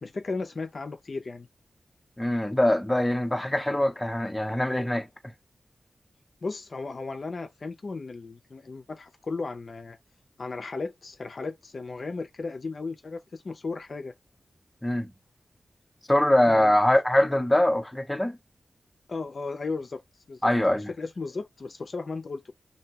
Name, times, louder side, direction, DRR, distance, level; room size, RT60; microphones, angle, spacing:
voice 1, 0.0-1.5 6.4-10.0 10.4-14.1 16.4-16.7 19.1-20.0 20.3-22.5, left 3 dB, 55° left, 0.5 m, -35 dB
voice 2, 2.2-5.3 14.8-15.1 16.1-18.4 20.4-20.9, left 1 dB, 10° left, 0.6 m, -23 dB
2.6 x 2.2 x 2.8 m
wide cardioid pair, 90°, 0 cm